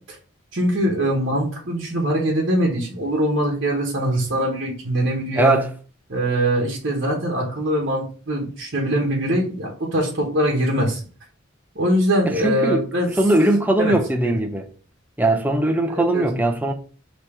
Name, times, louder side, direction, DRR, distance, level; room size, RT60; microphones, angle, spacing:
voice 1, 0.5-5.6 6.1-11.0 11.7-13.1 13.8-14.0 14.2-14.3 15.9-16.2, right 1 dB, 55° right, 1.0 m, -22 dB
voice 2, 5.4-5.7 12.3-12.8 13.2-14.7 15.2-16.7, right 1 dB, 10° right, 0.5 m, -20 dB
4.4 x 3.0 x 3.5 m
head